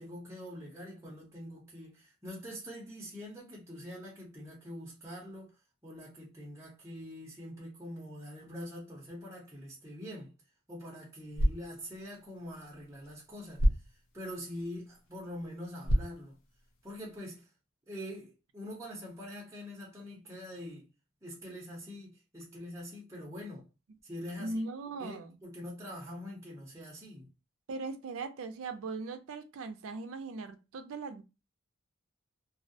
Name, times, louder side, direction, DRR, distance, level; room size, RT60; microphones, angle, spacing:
voice 1, 0.0-5.6 5.8-10.3 10.7-13.7 14.1-16.4 16.8-17.5 17.9-20.9 21.2-23.7 24.0-24.6 25.0-27.3, equal, 15° right, 0.6 m, -44 dB
sound 1, 11.2-17.2, equal, 70° left, 0.6 m, -34 dB
voice 2, 24.4-25.4 27.7-31.2, right 3 dB, 80° right, 0.4 m, -39 dB
2.3 x 2.0 x 2.6 m
head